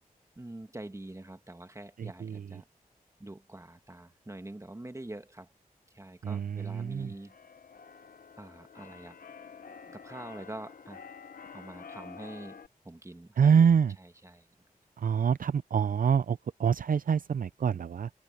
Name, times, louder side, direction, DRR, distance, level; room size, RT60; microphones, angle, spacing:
voice 1, 0.4-2.6 3.2-5.5 5.9-7.3 8.4-9.2 9.9-11.1 11.5-12.6 12.8-13.7 14.0-14.5, right 1 dB, 20° right, 1.6 m, -45 dB
voice 2, 2.0-2.5 6.2-7.1 13.4-14.0 15.0-18.1, right 7 dB, 65° right, 0.5 m, -26 dB
Keyboard (musical), 6.8-12.7, left 6 dB, 70° left, 1.0 m, -49 dB
cardioid pair, 60°, 15 cm